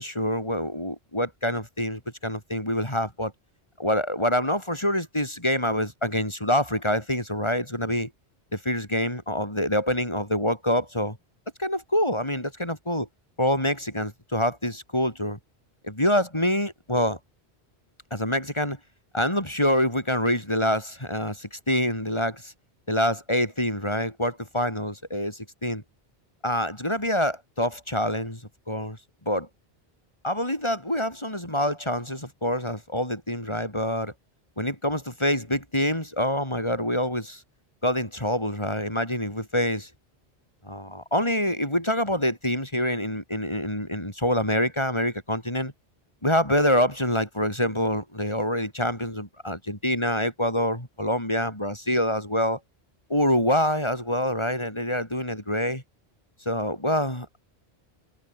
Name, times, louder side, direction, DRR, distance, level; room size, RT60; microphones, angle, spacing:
voice 1, 0.0-3.3 3.8-8.1 8.5-11.2 11.6-13.1 13.4-15.4 15.8-17.2 18.1-18.8 19.1-22.5 22.9-25.8 26.4-28.4 28.7-29.0 29.3-29.5 30.2-34.1 34.6-37.4 37.8-39.9 40.6-45.7 46.2-52.6 53.1-55.8 56.4-57.3, left 1 dB, 25° left, 6.1 m, -26 dB
omnidirectional pair, 1.1 m